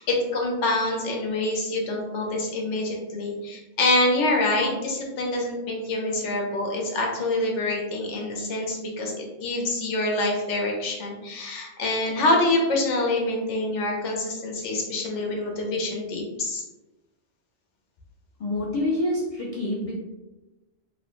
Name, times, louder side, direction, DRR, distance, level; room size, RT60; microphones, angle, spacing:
voice 1, 0.0-16.6, left 2 dB, 90° left, -1 dB, 1.0 m, -26 dB
voice 2, 18.4-19.9, left 1 dB, 60° left, -4 dB, 0.3 m, -27 dB
2.8 x 2.0 x 2.9 m, 1.1 s
omnidirectional pair, 1.2 m